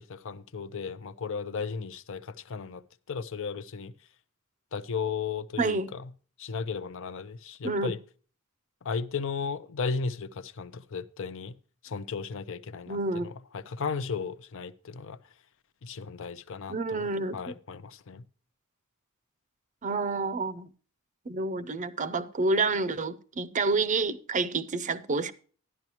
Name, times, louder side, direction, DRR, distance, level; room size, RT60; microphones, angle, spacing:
voice 1, 0.0-2.8 3.1-3.9 4.7-6.0 6.4-8.0 8.8-11.5 11.8-15.2 15.8-17.1 17.3-18.2, left 5 dB, 60° left, 0.6 m, -35 dB
voice 2, 5.6-5.9 7.6-7.9 12.9-13.3 16.7-17.5 19.8-20.7 21.3-25.3, right 3 dB, 35° right, 0.6 m, -29 dB
12.0 x 11.0 x 2.9 m
head